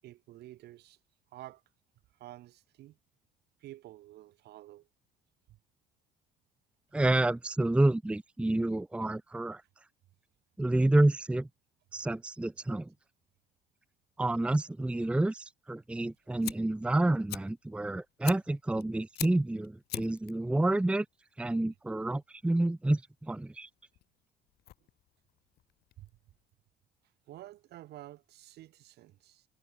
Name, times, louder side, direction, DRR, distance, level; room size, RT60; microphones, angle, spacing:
voice 1, 0.0-1.0 1.3-1.6 2.1-3.0 3.6-4.9 5.5-5.6 26.0-26.1 27.3-29.5, right 15 dB, 75° right, 6.9 m, -50 dB
voice 2, 6.9-9.6 10.6-11.5 11.9-12.9 14.2-21.1 21.4-23.7, right 2 dB, 5° right, 0.7 m, -29 dB
Fire, 16.0-26.5, left 15 dB, 70° left, 1.7 m, -46 dB
cardioid pair, 110°, 17 cm